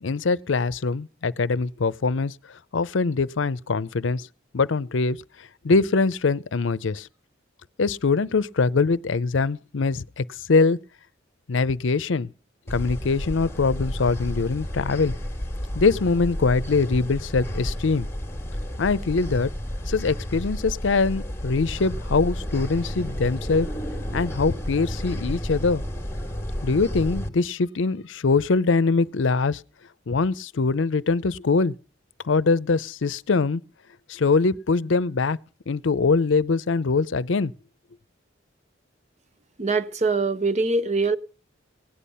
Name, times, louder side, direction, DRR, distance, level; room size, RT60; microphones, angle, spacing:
voice 1, 0.0-2.3 2.7-4.3 4.5-5.2 5.6-7.1 7.8-10.8 11.5-12.3 12.7-15.1 15.7-18.1 18.8-19.5 19.9-23.7 24.1-25.8 26.6-29.6 30.1-31.7 32.2-33.6 34.1-35.4 35.7-37.5, left 4 dB, 75° left, 0.6 m, -23 dB
sound 1, 12.7-27.3, equal, 15° left, 1.4 m, -31 dB
voice 2, 39.6-41.2, right 3 dB, 35° right, 0.8 m, -23 dB
17.5 x 10.0 x 5.5 m
head